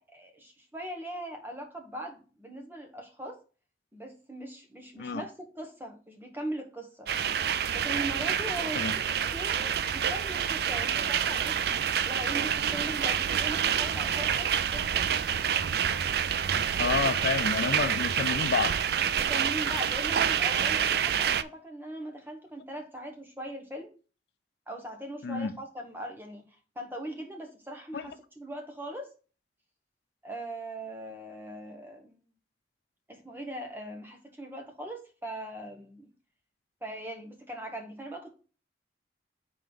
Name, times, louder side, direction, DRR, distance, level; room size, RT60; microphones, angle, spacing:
voice 1, 0.0-3.4 3.9-7.1 7.7-15.1 19.1-24.0 24.7-29.1 30.2-32.2 33.1-36.1 36.8-38.3, right 1 dB, 10° right, 1.1 m, -40 dB
sound 1, 7.1-21.4, right 8 dB, 60° right, 0.3 m, -28 dB
voice 2, 16.8-18.8 25.2-25.6 27.9-28.0, left 5 dB, 65° left, 0.4 m, -29 dB
5.3 x 3.8 x 5.3 m
head